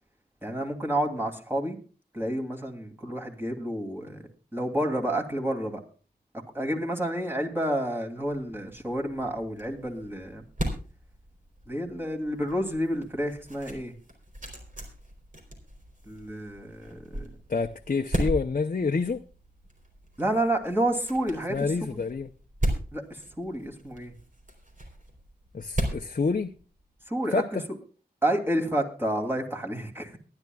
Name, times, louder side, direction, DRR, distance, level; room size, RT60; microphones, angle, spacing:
voice 1, 0.4-1.8 2.1-4.2 4.5-5.8 6.5-10.4 11.7-13.9 16.1-17.3 20.2-21.6 21.8-22.0 22.9-24.1 27.1-27.6 28.2-30.2, right 1 dB, 15° right, 2.8 m, -29 dB
sound 1, 8.5-27.0, right 1 dB, 50° right, 3.8 m, -37 dB
voice 2, 17.5-19.2 21.5-22.3 25.5-26.5 27.3-27.6, left 4 dB, 55° left, 0.7 m, -27 dB
23.0 x 10.5 x 2.4 m
wide cardioid pair, 65°, 17 cm